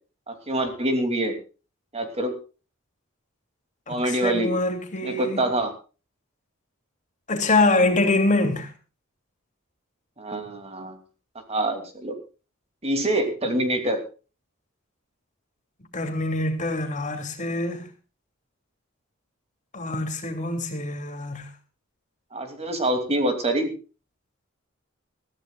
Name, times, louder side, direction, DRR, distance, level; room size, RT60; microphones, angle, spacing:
voice 1, 0.3-1.3 1.9-2.3 3.9-4.5 5.0-5.7 10.2-11.0 11.5-12.1 12.8-14.0 22.3-23.7, right 1 dB, 30° right, 2.9 m, -25 dB
voice 2, 3.9-5.4 7.3-8.7 15.9-17.9 19.7-21.5, left 2 dB, 35° left, 2.8 m, -24 dB
21.5 x 14.5 x 2.4 m
head